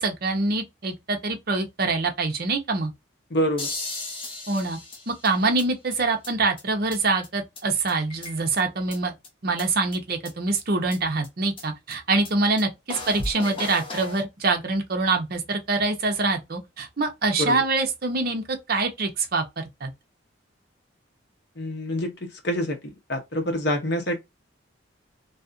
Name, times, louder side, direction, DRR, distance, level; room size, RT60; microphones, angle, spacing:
voice 1, 0.0-2.9 4.5-4.8 5.1-9.1 9.4-19.9, right 3 dB, 50° right, 0.6 m, -25 dB
voice 2, 3.3-3.7 17.4-17.6 21.6-24.2, equal, 55° left, 0.8 m, -27 dB
sound 1, 3.6-5.6 5.9-6.0 6.2-6.3 6.6-6.7 6.9-7.0 7.2-7.3 7.6-7.7 7.9-8.6 8.9-9.0 9.2-9.3 9.6-9.7 9.9-10.0 10.3-10.4 10.6-10.7 10.9-11.0 11.2-11.3 11.6-11.7 11.9-12.0 12.2-12.3 12.6-12.7 12.9-14.2, left 2 dB, 25° left, 0.7 m, -35 dB
2.7 x 2.4 x 2.4 m
head